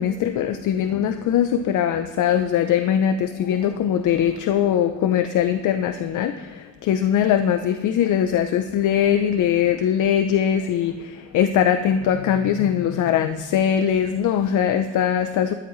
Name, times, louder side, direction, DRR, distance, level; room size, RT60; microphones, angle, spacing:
voice 1, 0.0-15.5, left 9 dB, 80° left, 9 dB, 0.7 m, -21 dB
14.5 x 13.0 x 3.2 m, 1.3 s
cardioid pair, 90°, 30 cm